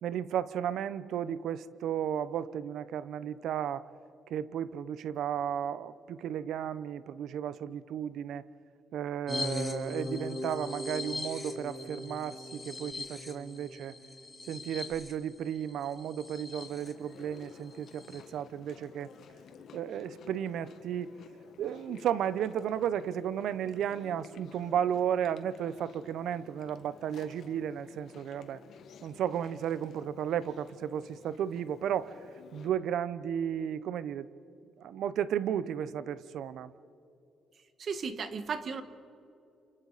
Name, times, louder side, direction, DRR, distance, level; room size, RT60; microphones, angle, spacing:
voice 1, 0.0-3.8 4.3-8.4 8.9-13.9 14.5-19.1 19.7-21.1 21.6-28.6 29.0-32.2 32.5-34.3 34.8-36.7, right 9 dB, 75° right, 16 dB, 0.8 m, -34 dB
sound 1, 9.3-16.9 17.3-17.4 17.7-18.2, left 2 dB, 25° left, 2.9 m, -39 dB
Chewing mastication, 16.6-32.7, left 7 dB, 70° left, 1.6 m, -53 dB
voice 2, 37.8-38.8, right 5 dB, 55° right, 10 dB, 1.5 m, -35 dB
28.5 x 27.5 x 4.1 m, 2.7 s
cardioid pair, 90°, 0 cm